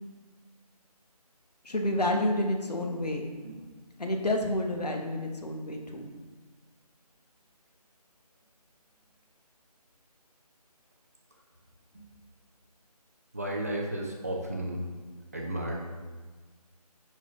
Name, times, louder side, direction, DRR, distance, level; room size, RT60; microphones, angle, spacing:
voice 1, 1.6-3.3 4.0-6.1, left 1 dB, 80° left, 2 dB, 1.1 m, -29 dB
voice 2, 13.3-14.8 15.3-15.8, right 1 dB, 25° right, -1 dB, 0.6 m, -33 dB
10.0 x 4.0 x 3.1 m, 1.4 s
figure-of-eight pair, 165°, 20 cm